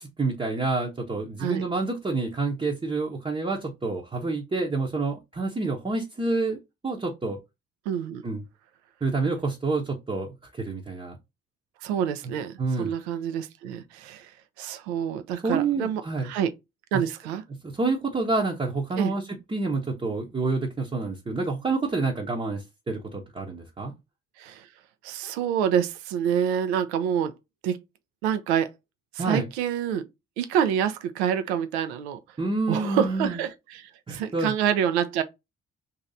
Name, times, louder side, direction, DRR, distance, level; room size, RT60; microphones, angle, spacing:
voice 1, 0.0-6.6 6.8-7.4 8.2-8.4 9.0-11.2 12.6-12.9 15.4-16.3 17.6-19.2 19.5-23.9 29.2-29.5 32.4-33.4 34.1-34.5, right 3 dB, 15° right, 0.8 m, -28 dB
voice 2, 7.9-8.2 11.8-14.3 14.6-16.5 16.9-17.4 19.0-19.1 24.4-24.7 25.0-27.3 27.6-27.8 28.2-28.7 29.1-30.1 30.4-32.2 32.7-35.2, right 9 dB, 70° right, 0.6 m, -27 dB
3.1 x 2.8 x 3.8 m
figure-of-eight pair, 40°, 34 cm